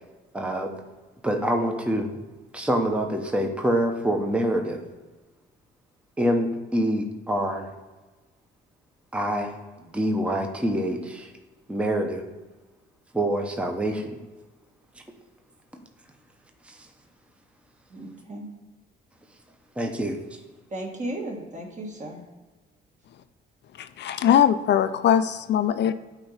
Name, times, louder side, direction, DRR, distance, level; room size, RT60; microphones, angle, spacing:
voice 1, 0.3-0.7 1.2-2.2 2.5-4.8 6.2-7.7 9.1-9.6 9.9-11.3 11.7-12.2 13.1-14.2 16.7-16.8 19.8-20.2, right 1 dB, 5° right, 3 dB, 0.8 m, -26 dB
voice 2, 17.9-18.5 20.7-22.2, right 1 dB, 40° right, 1 dB, 1.6 m, -35 dB
voice 3, 23.8-25.9, left 9 dB, 60° left, 11 dB, 0.4 m, -21 dB
8.8 x 3.0 x 5.6 m, 1.2 s
cardioid pair, 90°, 20 cm